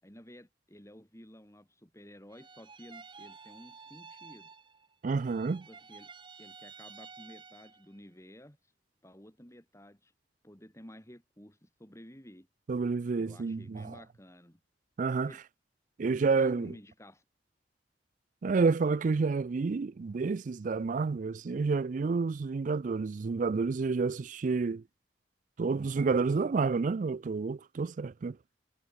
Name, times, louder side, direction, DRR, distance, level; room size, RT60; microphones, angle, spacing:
voice 1, 0.0-4.5 5.7-6.1 6.4-8.6 9.0-10.1 10.4-12.5 13.1-14.6 15.3-15.4 16.2-17.2, equal, 15° left, 7.0 m, -52 dB
sound 1, 2.3-4.9 5.2-7.9, right 5 dB, 25° right, 1.1 m, -52 dB
voice 2, 5.0-5.7 12.7-13.9 15.0-15.3 16.0-16.7 18.4-24.8 25.6-28.4, right 4 dB, 45° right, 0.4 m, -29 dB
head